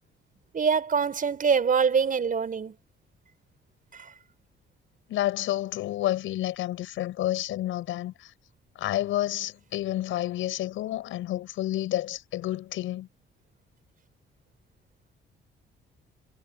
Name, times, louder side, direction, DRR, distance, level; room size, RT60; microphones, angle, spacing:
voice 1, 0.5-2.7 3.9-4.1, right 6 dB, 45° right, 4.9 m, -24 dB
voice 2, 5.1-8.3 8.8-13.1, left 14 dB, 85° left, 6.9 m, -30 dB
cardioid pair, 90°, 20 cm